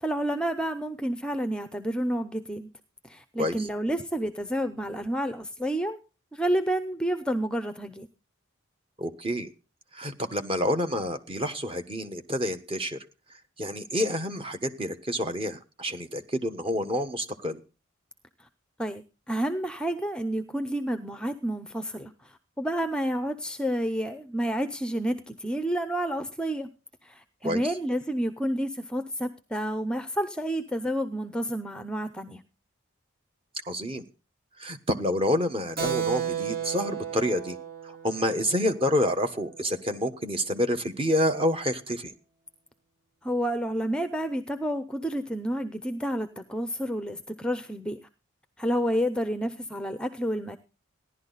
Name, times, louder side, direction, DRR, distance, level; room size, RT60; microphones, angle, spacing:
voice 1, 0.0-2.7 3.0-6.0 6.3-8.1 18.4-18.5 18.8-26.7 27.0-32.4 43.2-48.0 48.6-50.6, equal, 5° left, 9 dB, 0.6 m, -30 dB
voice 2, 9.0-9.5 9.9-13.0 13.6-17.6 27.4-27.6 33.7-34.0 34.6-37.6 37.8-42.1, equal, 25° right, 8 dB, 1.2 m, -28 dB
Keyboard (musical), 35.8-39.9, right 8 dB, 45° right, 1.2 m, -34 dB
16.0 x 11.0 x 4.0 m, 0.32 s
head